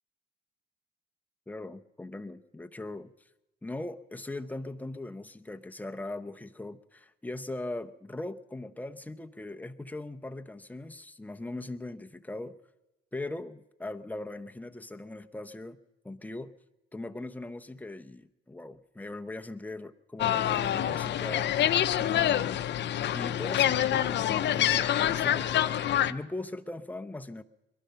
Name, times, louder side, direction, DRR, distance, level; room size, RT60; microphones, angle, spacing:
voice 1, 1.5-3.1 3.6-12.5 13.1-15.8 16.0-16.5 16.9-22.7 23.1-27.4, left 2 dB, 10° left, 6 dB, 0.8 m, -40 dB
sound 1, 20.2-26.1, left 11 dB, 60° left, 0.6 m, -26 dB
22.0 x 11.5 x 5.7 m, 0.97 s
cardioid pair, 90°, 20 cm